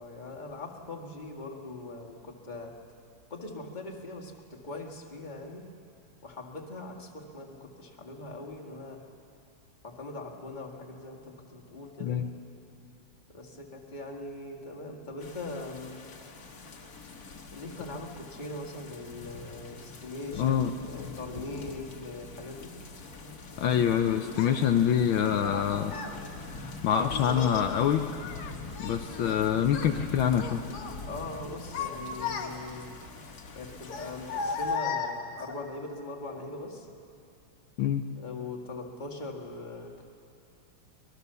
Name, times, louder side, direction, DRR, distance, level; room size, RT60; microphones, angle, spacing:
voice 1, 0.0-2.7 3.3-5.7 6.2-9.0 9.8-12.2 13.3-16.0 17.5-22.8 31.0-32.9 33.5-36.9 38.2-40.0, left 2 dB, 20° left, 1 dB, 1.9 m, -41 dB
sound 1, 15.2-34.8, left 3 dB, 45° left, 1.9 m, -44 dB
voice 2, 20.4-20.7 23.6-26.0 26.6-28.0 28.8-30.6 37.8-38.0, left 9 dB, 70° left, 6 dB, 1.5 m, -25 dB
Child speech kid speaking, 24.4-24.5 25.4-26.2 27.1-27.7 28.1-29.4 29.6-30.0 30.4-31.0 31.5-32.8 33.8-35.6, left 5 dB, 90° left, 2.3 m, -35 dB
24.0 x 20.0 x 6.9 m, 2.5 s
omnidirectional pair, 2.4 m